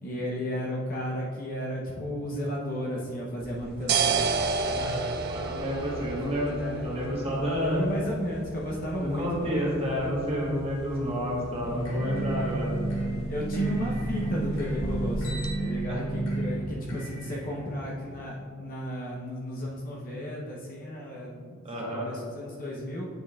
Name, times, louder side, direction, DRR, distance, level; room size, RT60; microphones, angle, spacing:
voice 1, 0.0-4.3 4.5-5.0 5.9-6.0 6.5-6.8 7.5-9.5 13.3-23.1, equal, 45° left, -4 dB, 0.8 m, -34 dB
sound 1, 3.4-15.5, right 4 dB, 50° right, 0.5 m, -34 dB
voice 2, 4.7-7.9 9.0-12.7 15.9-16.0 21.6-22.1, equal, 30° right, -5 dB, 1.3 m, -30 dB
sound 2, 11.6-18.2, right 2 dB, 80° left, 1.6 m, -31 dB
9.1 x 5.4 x 2.4 m, 2.2 s
head